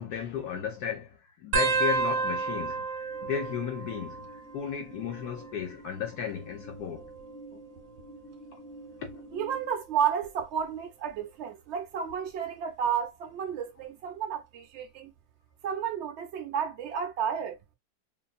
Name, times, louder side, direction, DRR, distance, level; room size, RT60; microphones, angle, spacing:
voice 1, 0.0-2.9 3.2-4.3 4.5-7.1 7.5-7.6 9.0-9.2, left 8 dB, 70° left, 1.0 m, -34 dB
sound 1, 1.5-4.7 5.0-5.6 6.6-8.1 8.7-9.0 10.2-10.6 12.1-12.2, right 4 dB, 85° right, 1.3 m, -32 dB
sound 2, 3.0-9.7, right 1 dB, 25° left, 0.7 m, -51 dB
voice 2, 9.3-15.1 15.6-17.6, right 8 dB, 60° right, 0.7 m, -32 dB
2.8 x 2.5 x 2.3 m
omnidirectional pair, 1.9 m